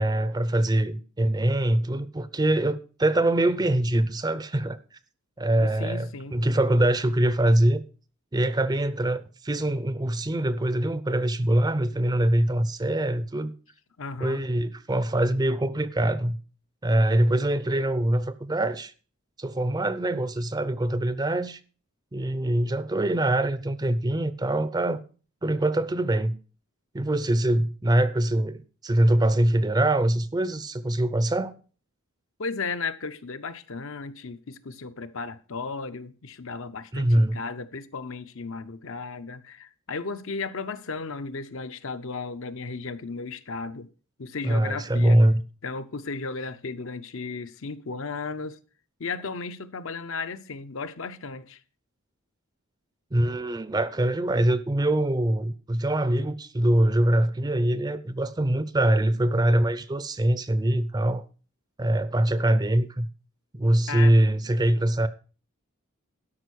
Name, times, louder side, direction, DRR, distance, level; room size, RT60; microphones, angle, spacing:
voice 1, 0.0-4.8 5.4-7.8 8.3-13.5 14.2-16.4 16.8-18.9 19.4-21.6 22.1-25.0 25.4-26.3 26.9-31.5 36.9-37.4 44.4-45.4 53.1-61.2 61.8-63.1 63.5-65.1, right 1 dB, 20° right, 0.5 m, -23 dB
voice 2, 5.6-6.4 14.0-14.4 32.4-43.9 44.2-45.2 45.6-48.6 49.0-51.6 63.9-64.1, left 4 dB, 60° left, 0.7 m, -35 dB
12.5 x 5.4 x 6.3 m
head